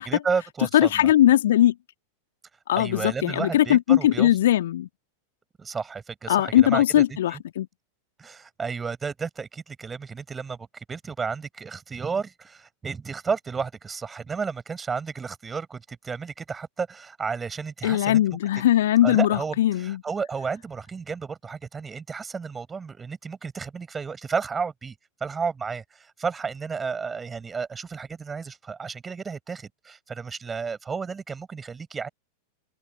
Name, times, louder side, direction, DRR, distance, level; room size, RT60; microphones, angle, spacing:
voice 1, 0.0-1.1 2.8-4.3 5.6-7.4 8.2-18.2 19.0-24.9 25.2-32.1, right 5 dB, 15° right, 4.7 m, -32 dB
voice 2, 0.7-1.7 2.7-4.9 6.3-7.7 17.8-20.0, left 12 dB, 60° left, 1.8 m, -20 dB
open air
figure-of-eight pair, 90°, 0 cm